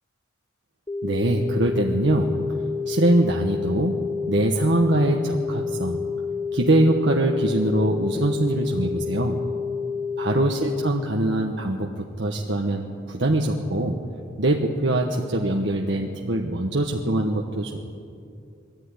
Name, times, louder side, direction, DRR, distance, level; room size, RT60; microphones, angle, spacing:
sound 1, 0.9-10.9, left 5 dB, 20° left, 0.6 m, -29 dB
voice 1, 1.0-2.5 2.9-4.0 4.3-6.0 6.5-9.4 10.2-11.9 12.2-14.0 14.4-17.8, right 1 dB, 60° right, 1 dB, 1.3 m, -23 dB
22.0 x 14.0 x 9.8 m, 2.6 s
head